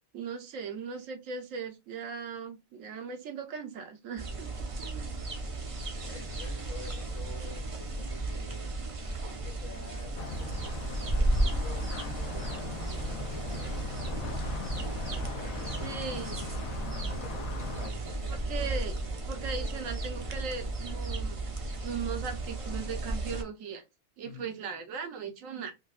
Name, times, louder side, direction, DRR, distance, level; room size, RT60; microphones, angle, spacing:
voice 1, 0.1-4.5 4.8-5.2 15.8-16.4 18.3-18.9 19.3-21.4 21.8-23.8 24.2-25.7, right 5 dB, 75° right, 1.2 m, -38 dB
sound 1, 4.2-23.4, right 2 dB, 40° right, 0.5 m, -34 dB
voice 2, 5.8-8.7 9.3-14.4 15.0-16.0 16.3-18.7 19.0-19.1 24.2-24.4, left 4 dB, 60° left, 1.4 m, -50 dB
sound 2, 10.2-17.9, left 5 dB, 85° left, 1.1 m, -40 dB
5.3 x 2.2 x 2.4 m
omnidirectional pair, 1.4 m